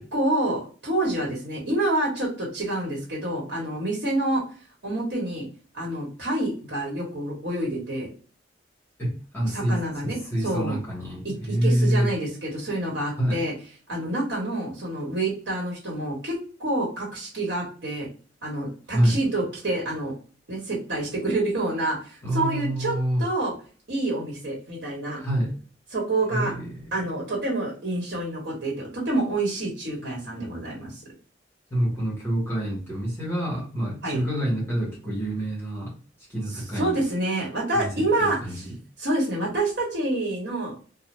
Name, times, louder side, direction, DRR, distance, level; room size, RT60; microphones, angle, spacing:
voice 1, 0.0-4.4 4.8-5.5 5.7-8.1 9.5-10.2 10.4-10.8 11.6-13.5 13.9-18.1 18.4-20.1 20.5-22.9 23.2-23.5 23.9-25.2 25.9-26.5 26.9-30.9 34.0-34.2 36.8-38.4 38.6-38.7 39.0-40.7, right 2 dB, 60° right, -3 dB, 1.2 m, -27 dB
voice 2, 9.0-12.1 13.2-13.5 18.9-19.2 22.2-23.2 25.2-25.6 26.3-27.1 31.7-36.0 36.3-37.0 37.7-38.8, equal, 15° left, -6 dB, 1.3 m, -27 dB
2.6 x 2.2 x 3.2 m, 0.39 s
head